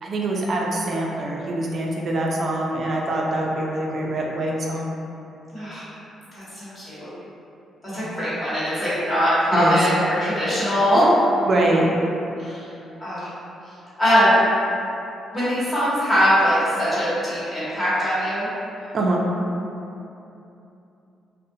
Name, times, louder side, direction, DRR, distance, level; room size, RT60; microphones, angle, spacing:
voice 1, 0.0-4.9 7.9-8.1 9.5-9.8 11.5-11.9 16.8-16.9 18.9-19.2, right 1 dB, 50° right, -2 dB, 0.4 m, -24 dB
voice 2, 5.5-5.9 6.3-7.1 7.9-11.1 12.4-12.7 13.0-13.3 14.0-14.4 15.3-18.5, equal, 20° left, -12 dB, 1.2 m, -21 dB
2.4 x 2.0 x 2.6 m, 2.8 s
cardioid pair, 90°, 0 cm